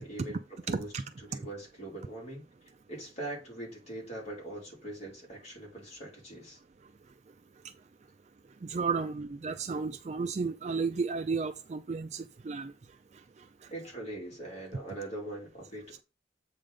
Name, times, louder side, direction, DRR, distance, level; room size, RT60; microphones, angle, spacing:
voice 1, 0.0-0.9 1.2-2.5 2.9-6.6 13.7-16.0, right 1 dB, 35° left, 2.5 m, -42 dB
voice 2, 0.7-1.0 8.6-12.7 13.4-13.5, right 4 dB, 35° right, 0.3 m, -33 dB
7.6 x 3.7 x 5.0 m
head